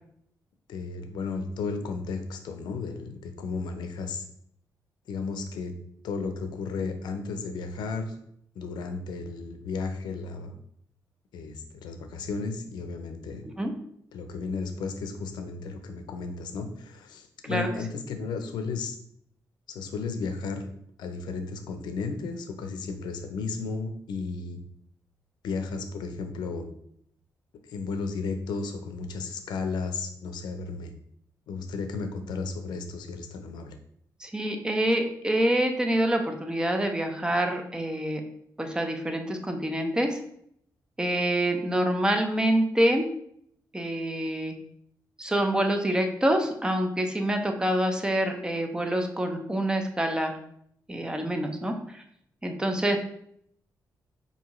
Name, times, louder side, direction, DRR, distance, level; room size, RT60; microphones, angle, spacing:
voice 1, 0.7-4.2 5.1-5.7 6.0-8.2 8.6-10.5 11.3-13.4 14.1-19.0 19.7-20.7 21.0-24.6 25.4-26.6 27.7-30.9 31.5-33.8, left 4 dB, 90° left, 7 dB, 0.5 m, -34 dB
voice 2, 34.2-38.2 38.6-40.2 41.0-43.1 43.7-44.5 45.2-50.4 50.9-52.0 52.4-53.0, right 1 dB, 10° right, 4 dB, 0.6 m, -26 dB
4.6 x 2.7 x 3.0 m, 0.69 s
cardioid pair, 95°, 7 cm